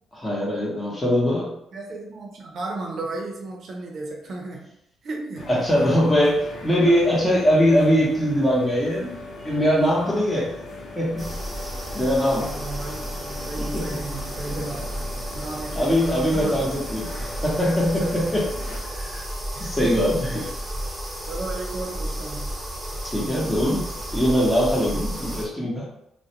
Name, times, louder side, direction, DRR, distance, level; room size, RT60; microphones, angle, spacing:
voice 1, 0.2-1.5 5.5-9.1 9.4-10.5 11.0-11.3 11.9-12.5 13.7-13.8 14.4-14.5 15.8-17.1 17.4-18.4 18.9-19.3 19.6-20.3 23.0-25.9, equal, 15° left, -4 dB, 0.9 m, -21 dB
voice 2, 0.7-1.1 1.7-4.7 5.0-5.5 12.3-16.6 17.9-18.5 19.5-20.6 21.3-22.6 24.6-24.8, right 2 dB, 60° right, 0 dB, 0.6 m, -35 dB
sound 1, 5.4-18.8, left 2 dB, 70° left, 0.7 m, -39 dB
sound 2, 11.2-25.5, right 1 dB, 10° right, 1.0 m, -32 dB
2.3 x 2.1 x 2.8 m, 0.79 s
cardioid pair, 90°, 0 cm